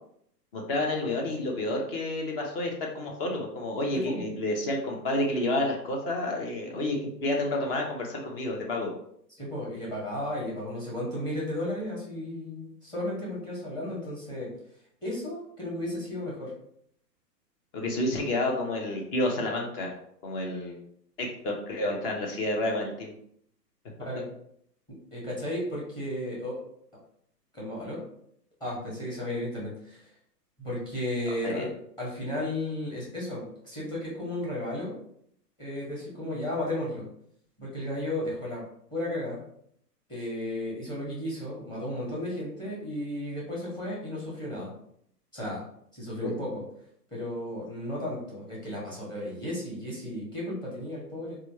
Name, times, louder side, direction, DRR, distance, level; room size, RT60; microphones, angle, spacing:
voice 1, 0.5-8.9 17.7-19.9 20.2-20.8 21.2-23.1 31.4-31.7 46.2-46.3, left 1 dB, 35° left, 0 dB, 0.9 m, -30 dB
voice 2, 3.9-4.3 9.4-14.5 15.0-16.5 24.0-24.3 24.9-26.6 27.5-28.0 28.6-30.1 30.6-31.7 32.0-35.0 35.6-37.1 37.6-38.7 38.9-39.4 40.1-44.7 45.3-45.6 45.9-46.6 47.1-51.4, left 1 dB, 10° left, -5 dB, 1.1 m, -34 dB
4.0 x 2.4 x 3.0 m, 0.69 s
hypercardioid pair, 130°, 50 cm